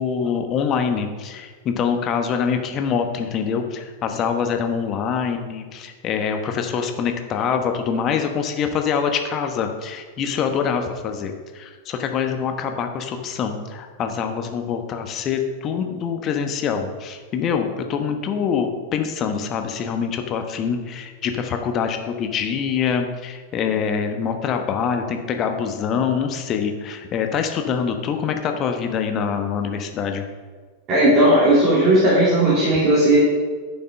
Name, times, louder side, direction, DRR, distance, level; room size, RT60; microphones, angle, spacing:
voice 1, 0.0-30.2, left 6 dB, 30° left, 5 dB, 1.1 m, -25 dB
voice 2, 30.9-33.2, right 1 dB, 30° right, -7 dB, 3.0 m, -16 dB
11.0 x 6.0 x 5.3 m, 1.5 s
figure-of-eight pair, 90°, 0 cm